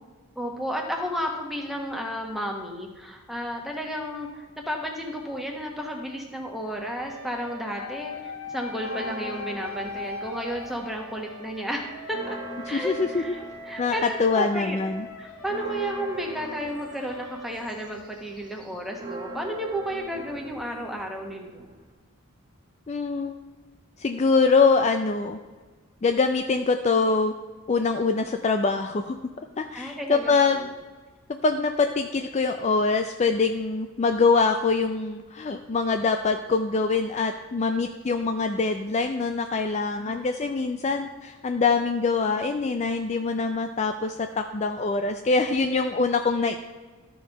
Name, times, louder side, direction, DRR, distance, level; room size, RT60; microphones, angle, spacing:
voice 1, 0.4-12.4 12.7-14.8 15.2-21.7 29.7-30.6 39.9-40.2, equal, ahead, 1 dB, 1.2 m, -33 dB
sound 1, 6.6-18.4, left 3 dB, 85° left, 1.8 m, -40 dB
Church bell, 8.7-11.1 11.4-11.5 11.9-21.9, right 1 dB, 20° right, 0.9 m, -42 dB
voice 2, 12.7-13.4 13.8-15.1 22.9-23.4 24.0-25.4 26.0-27.3 27.7-29.2 29.6-30.7 31.4-46.6, left 4 dB, 30° left, 6 dB, 0.4 m, -24 dB
13.0 x 4.6 x 5.3 m, 1.3 s
head